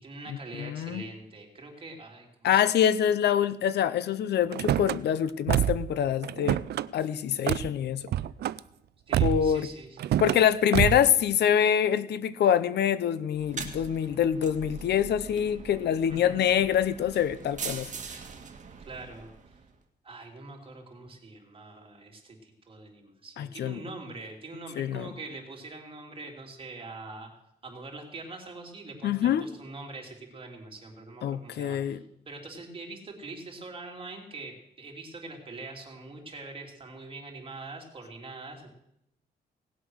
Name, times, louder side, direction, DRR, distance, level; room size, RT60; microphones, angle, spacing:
voice 1, 0.0-2.6 9.1-10.2 16.1-16.4 18.8-19.6 20.0-27.3 27.6-38.7, right 3 dB, 30° right, 1 dB, 3.1 m, -43 dB
voice 2, 0.6-1.0 2.4-6.6 6.9-8.0 9.2-9.7 10.2-17.9 23.4-23.8 24.8-25.1 29.0-29.4 31.2-32.0, left 9 dB, 85° left, 15 dB, 0.7 m, -25 dB
Car / Slam, 4.5-5.0 5.5-5.9 6.2-6.9 7.5-7.7 8.1-8.6 9.1-9.5 10.0-10.4 10.7-11.1, right 11 dB, 80° right, 0.4 m, -26 dB
sound 1, 13.3-19.7, right 5 dB, 50° right, 1.7 m, -42 dB
17.5 x 8.2 x 6.3 m, 0.80 s
cardioid pair, 115°, 17 cm